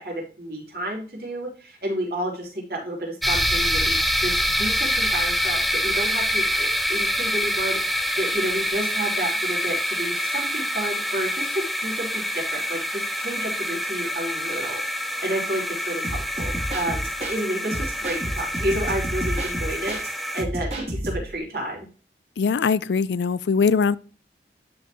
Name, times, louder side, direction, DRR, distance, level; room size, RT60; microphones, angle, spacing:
voice 1, 0.0-21.9, right 1 dB, 60° right, 3.6 m, -31 dB
sound 1, 3.2-20.4, equal, ahead, 0.4 m, -26 dB
sound 2, 16.0-17.4 17.7-20.1 20.4-21.4, equal, 35° right, 2.8 m, -30 dB
voice 2, 22.4-24.0, left 5 dB, 85° left, 0.4 m, -21 dB
12.0 x 4.3 x 3.0 m
head